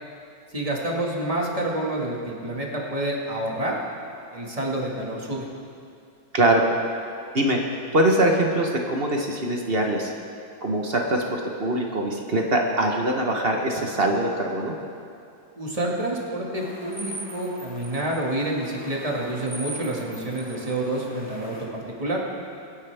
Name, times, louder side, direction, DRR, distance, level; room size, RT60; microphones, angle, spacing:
voice 1, 0.5-3.8 4.3-5.5 15.6-22.2, right 1 dB, 20° right, -3 dB, 1.9 m, -28 dB
voice 2, 7.9-10.1 10.6-14.7, right 1 dB, 40° right, 1 dB, 1.1 m, -23 dB
sound 1, 16.6-21.6, right 1 dB, 5° left, 1.7 m, -41 dB
24.5 x 9.7 x 3.5 m, 2.5 s
omnidirectional pair, 2.0 m